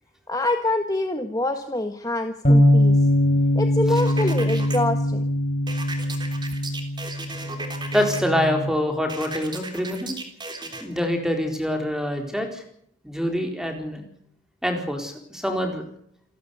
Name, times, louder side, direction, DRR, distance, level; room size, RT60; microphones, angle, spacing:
voice 1, 0.3-3.1 3.5-5.2, left 2 dB, 20° left, 6 dB, 1.4 m, -25 dB
sound 1, 2.4-8.7, left 1 dB, 40° left, 5.1 m, -21 dB
sound 2, 4.0-4.8 5.7-8.2 9.1-10.8, right 3 dB, 25° right, 3.4 m, -35 dB
voice 2, 7.9-10.2 10.8-12.6 13.0-14.0 14.6-15.8, left 1 dB, 5° right, 4 dB, 4.2 m, -25 dB
28.5 x 13.0 x 8.2 m, 0.68 s
head